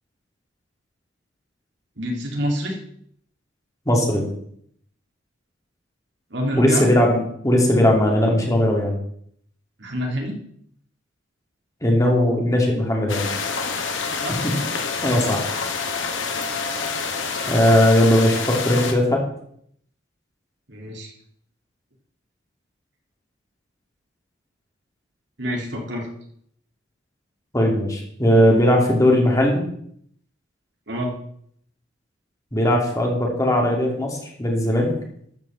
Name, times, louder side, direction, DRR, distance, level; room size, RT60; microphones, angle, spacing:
voice 1, 2.0-2.8 6.3-6.9 9.8-10.4 14.2-14.4 20.7-21.1 25.4-26.1 30.9-31.1, equal, 65° right, 0 dB, 3.1 m, -27 dB
voice 2, 3.9-4.3 6.6-9.0 11.8-13.3 14.3-14.6 15.0-15.4 17.5-19.2 27.5-29.6 32.5-34.9, left 1 dB, 20° left, 0 dB, 2.8 m, -18 dB
sound 1, 13.1-18.9, left 5 dB, 85° left, 1.9 m, -27 dB
13.0 x 5.8 x 7.4 m, 0.67 s
head